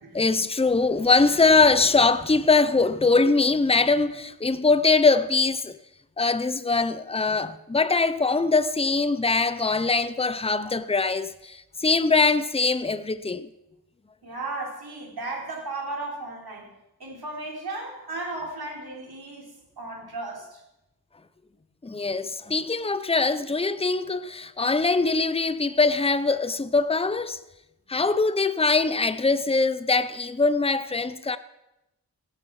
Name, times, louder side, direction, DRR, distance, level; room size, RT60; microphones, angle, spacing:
voice 1, 0.1-5.8 6.2-13.5 21.8-27.4 27.9-31.4, left 3 dB, 15° left, 0.7 m, -22 dB
voice 2, 14.2-16.7 17.0-19.5 19.8-20.6, right 2 dB, 75° right, 4.1 m, -35 dB
17.5 x 12.5 x 4.9 m
wide cardioid pair, 85°, 38 cm